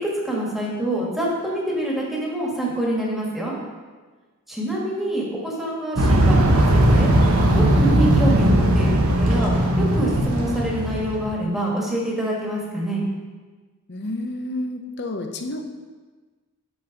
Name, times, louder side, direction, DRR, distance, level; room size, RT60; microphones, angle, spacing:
voice 1, 0.2-3.6 4.5-7.1 7.5-13.0, right 1 dB, ahead, -4 dB, 1.7 m, -26 dB
sound 1, 5.9-11.3, right 1 dB, 75° right, 1.1 m, -18 dB
voice 2, 13.9-15.7, left 1 dB, 50° left, 5 dB, 0.8 m, -30 dB
6.3 x 6.0 x 5.2 m, 1.4 s
head